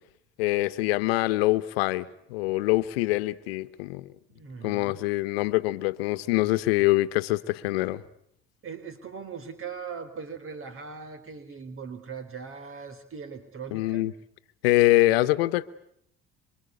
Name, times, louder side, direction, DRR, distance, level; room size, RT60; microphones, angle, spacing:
voice 1, 0.4-4.1 4.6-8.0 13.7-14.1 14.6-15.7, left 18 dB, 85° left, 1.2 m, -24 dB
voice 2, 4.3-5.0 8.6-14.1, right 6 dB, 45° right, 4.0 m, -40 dB
27.5 x 25.5 x 8.2 m
hypercardioid pair, 70°, 30 cm